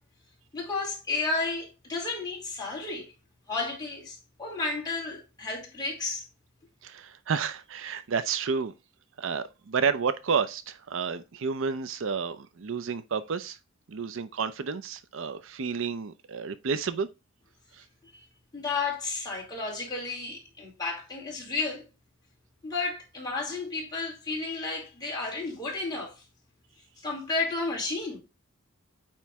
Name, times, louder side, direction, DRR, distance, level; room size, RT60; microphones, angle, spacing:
voice 1, 0.5-3.1 3.5-6.2 18.0-18.3 18.5-21.8 22.6-26.2 27.0-28.2, left 3 dB, 20° left, 2.7 m, -32 dB
voice 2, 6.8-8.7 9.2-13.6 13.9-17.1 17.7-17.8, right 5 dB, 65° right, 0.5 m, -30 dB
8.7 x 3.1 x 3.5 m
head